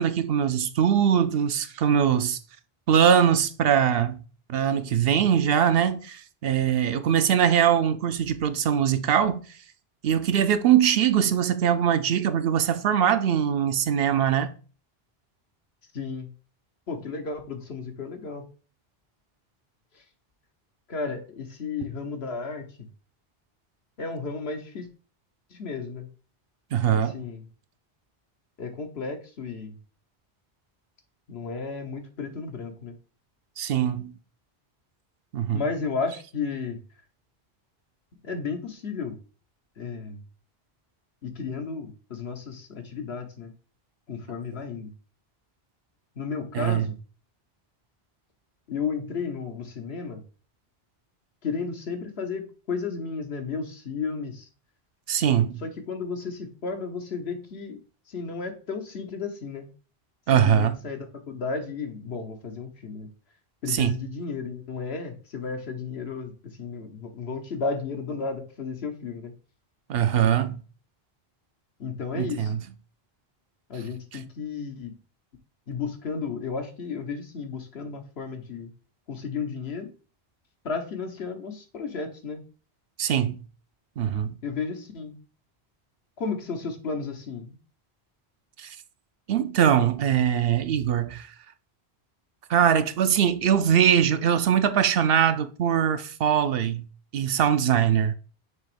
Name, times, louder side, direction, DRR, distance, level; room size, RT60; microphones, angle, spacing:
voice 1, 0.0-2.4 2.9-4.2 4.5-9.4 10.0-14.5 26.7-27.2 33.6-34.1 35.3-35.6 46.5-46.9 55.1-55.6 60.3-60.8 63.7-64.0 69.9-70.5 72.2-72.6 83.0-83.4 84.0-84.4 88.6-88.8 89.3-91.3 92.5-96.8 97.1-98.1, right 9 dB, 70° right, 0.8 m, -22 dB
voice 2, 15.9-16.3 16.9-18.4 20.9-22.9 24.0-24.9 25.5-26.1 27.0-27.4 28.6-29.7 31.3-33.0 35.5-36.8 38.2-39.2 39.8-40.2 41.2-43.5 44.1-44.9 46.2-47.0 48.7-50.2 51.4-54.5 55.6-57.8 58.1-59.7 60.3-63.1 63.6-69.3 71.8-72.5 73.7-74.9 75.7-78.7 79.1-79.9 80.6-82.4 84.4-85.1 86.2-87.6, left 5 dB, 80° left, 1.3 m, -33 dB
6.4 x 3.0 x 4.9 m
omnidirectional pair, 1.0 m